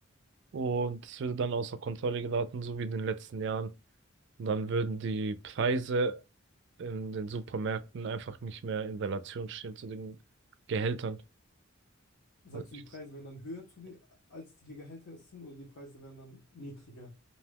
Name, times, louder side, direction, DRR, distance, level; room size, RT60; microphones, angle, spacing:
voice 1, 0.5-3.7 4.4-6.2 6.8-10.2 10.7-11.2 12.5-12.6, right 4 dB, 60° right, 0.4 m, -33 dB
voice 2, 12.4-14.0 14.3-17.1, left 1 dB, 75° left, 1.0 m, -47 dB
2.7 x 2.2 x 3.4 m
head